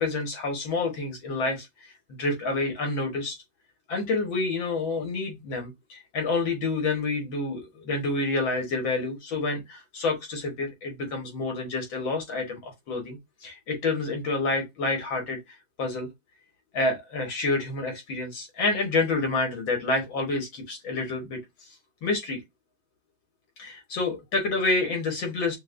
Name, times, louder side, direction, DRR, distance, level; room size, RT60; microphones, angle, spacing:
voice 1, 0.0-1.9 2.2-3.4 3.9-15.4 15.8-16.1 16.7-21.7 22.0-22.4 23.6-25.6, left 3 dB, 80° left, 2.0 m, -28 dB
6.2 x 2.2 x 2.5 m
omnidirectional pair, 2.1 m